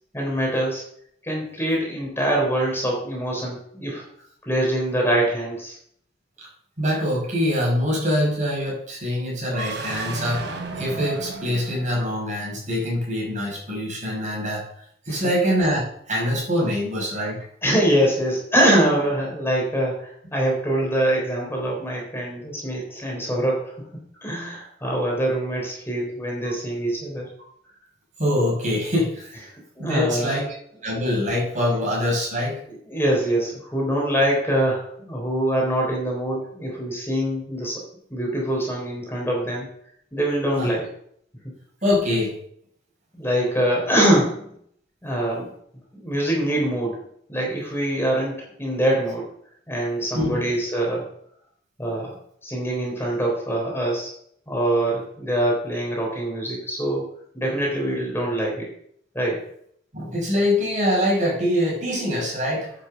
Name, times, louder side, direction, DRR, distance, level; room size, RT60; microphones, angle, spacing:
voice 1, 0.1-0.8 1.2-4.0 4.4-5.8 15.1-15.2 17.6-23.8 24.2-27.3 29.8-30.4 32.9-37.8 38.1-39.7 40.1-40.9 43.1-44.5 45.0-45.5 46.0-47.0 47.3-49.3 49.7-51.1 51.8-52.1 52.4-54.1 54.5-57.1 57.3-58.7 59.1-59.4, right 1 dB, 15° left, -2 dB, 3.6 m, -24 dB
voice 2, 6.8-14.6 15.1-17.5 26.4-26.5 28.2-29.3 29.8-30.5 30.8-32.6 40.6-40.7 41.8-42.4 50.1-50.4 59.9-62.7, left 1 dB, 45° right, -3 dB, 5.7 m, -24 dB
sound 1, 9.5-12.4, right 3 dB, 80° right, 3.2 m, -34 dB
9.9 x 7.3 x 6.8 m, 0.67 s
head